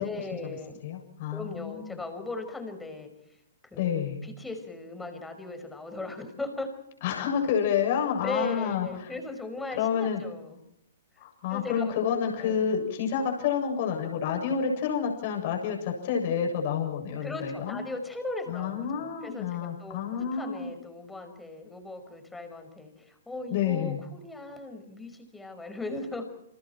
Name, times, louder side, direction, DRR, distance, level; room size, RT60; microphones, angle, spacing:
voice 1, 0.0-0.8 1.3-3.1 3.6-6.7 8.2-10.6 11.5-12.1 12.4-12.7 17.2-26.3, left 2 dB, 5° left, 6 dB, 5.5 m, -38 dB
voice 2, 0.8-2.0 3.8-4.3 7.0-9.1 9.8-10.2 11.2-17.8 18.5-20.7 23.5-24.0, left 7 dB, 45° left, 2 dB, 7.2 m, -29 dB
29.5 x 28.0 x 4.6 m, 0.81 s
figure-of-eight pair, 125°, 0 cm